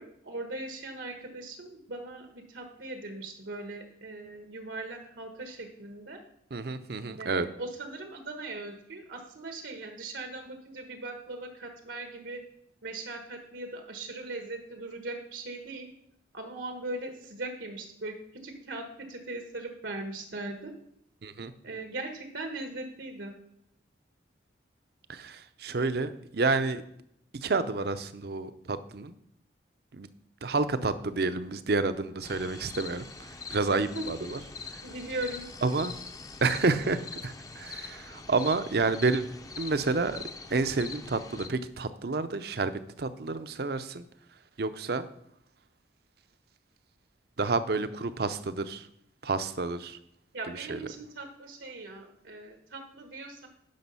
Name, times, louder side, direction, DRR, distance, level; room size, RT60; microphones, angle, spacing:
voice 1, 0.0-6.2 7.2-12.4 12.8-15.9 16.3-18.1 18.4-20.7 21.6-23.3 33.9-34.0 34.8-35.4 50.3-53.5, right 2 dB, 80° right, 5 dB, 1.2 m, -39 dB
voice 2, 6.5-7.5 21.2-21.5 25.1-26.8 27.3-29.1 29.9-30.1 30.4-34.4 35.6-35.9 36.4-39.2 39.6-40.2 40.5-42.7 43.0-44.1 44.6-45.1 47.4-48.9 49.2-50.0 50.5-50.8, right 3 dB, 55° right, 12 dB, 0.6 m, -29 dB
sound 1, 32.2-41.5, left 4 dB, 20° left, 0.6 m, -43 dB
10.5 x 6.0 x 5.5 m, 0.75 s
head